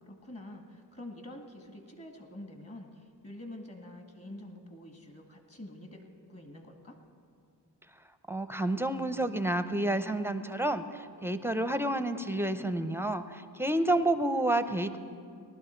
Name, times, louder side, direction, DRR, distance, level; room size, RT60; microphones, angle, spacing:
voice 1, 0.0-7.0, left 1 dB, 35° left, 3 dB, 1.8 m, -47 dB
voice 2, 8.3-15.0, right 1 dB, 5° right, 10 dB, 0.6 m, -29 dB
19.0 x 12.0 x 4.5 m, 2.4 s
cardioid pair, 55°, 43 cm